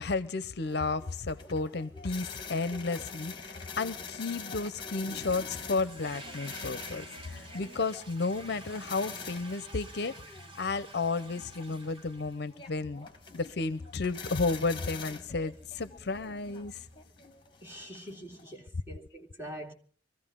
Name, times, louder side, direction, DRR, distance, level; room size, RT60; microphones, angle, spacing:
voice 1, 0.0-10.1 10.6-13.1 13.3-16.9, left 3 dB, 55° left, 0.6 m, -33 dB
sound 1, 0.6-18.5, left 5 dB, 25° left, 1.4 m, -46 dB
Toilet flush, 5.0-17.3, equal, 30° right, 3.5 m, -50 dB
voice 2, 17.6-19.7, equal, 10° right, 2.4 m, -44 dB
24.0 x 15.0 x 3.7 m
head